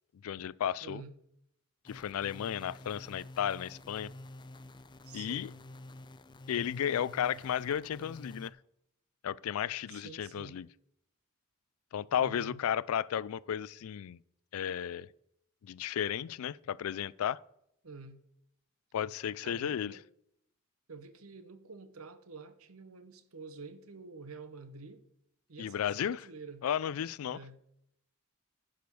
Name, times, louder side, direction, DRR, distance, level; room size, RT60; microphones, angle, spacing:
voice 1, 0.2-1.0 1.9-4.1 5.1-5.5 6.5-8.5 9.2-10.7 11.9-14.2 14.5-15.1 15.6-17.4 18.9-19.9 25.6-26.2 26.6-27.4, left 9 dB, 85° left, 0.3 m, -34 dB
voice 2, 0.8-1.1 5.0-5.5 9.9-10.6 12.2-12.6 17.8-18.2 19.4-20.0 20.9-25.0 25.5-26.7 27.3-27.6, right 4 dB, 85° right, 1.0 m, -48 dB
sound 1, 1.9-8.5, left 1 dB, 20° left, 0.5 m, -49 dB
10.5 x 5.0 x 6.9 m
head